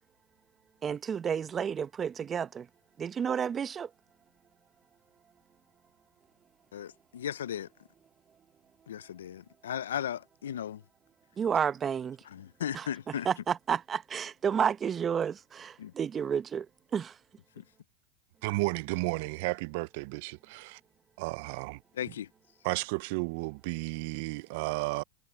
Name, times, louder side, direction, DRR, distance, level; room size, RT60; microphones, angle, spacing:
voice 1, 0.8-2.7 3.0-3.9 11.4-12.2 12.7-12.9 13.2-16.7 16.9-17.2, right 7 dB, 25° right, 0.8 m, -31 dB
voice 2, 6.7-7.7 8.9-10.8 12.3-13.3 15.8-15.9 17.6-17.7 22.0-22.3, left 9 dB, 90° left, 0.5 m, -36 dB
voice 3, 18.4-20.8 21.2-21.8 22.6-25.0, right 25 dB, 60° right, 0.4 m, -33 dB
hypercardioid pair, 115°, 0 cm